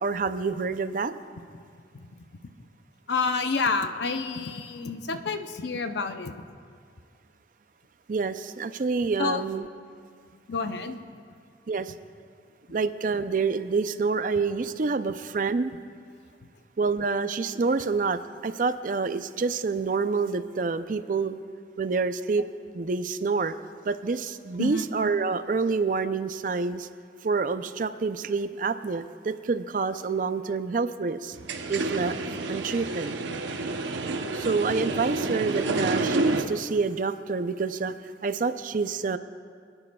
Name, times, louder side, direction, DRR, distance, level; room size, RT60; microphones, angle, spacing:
voice 1, 0.0-1.1 8.1-9.7 11.7-11.9 12.7-15.7 16.8-21.4 21.8-22.4 22.7-23.5 23.9-26.9 27.2-31.4 31.7-32.1 32.5-33.2 34.3-37.9 38.2-39.2, right 4 dB, 45° right, 11 dB, 0.4 m, -27 dB
voice 2, 3.1-6.4 9.2-9.4 10.5-11.0 24.6-24.8, left 4 dB, 70° left, 8 dB, 0.6 m, -28 dB
sound 1, 31.3-36.4, right 2 dB, 90° right, 0.8 m, -29 dB
28.5 x 9.9 x 2.3 m, 2.2 s
head